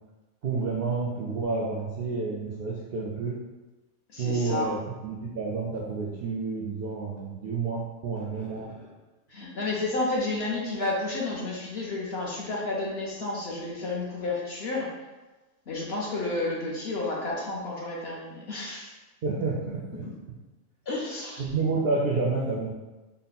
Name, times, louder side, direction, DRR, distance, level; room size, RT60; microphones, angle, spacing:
voice 1, 0.4-3.4 4.2-8.9 19.2-20.1 21.4-22.7, right 4 dB, 65° right, -3 dB, 0.5 m, -29 dB
voice 2, 4.1-4.7 9.3-14.9 15.7-18.9 19.9-20.1 20.9-21.4, left 2 dB, 55° left, -3 dB, 0.8 m, -31 dB
4.0 x 2.1 x 4.1 m, 1.1 s
omnidirectional pair, 1.5 m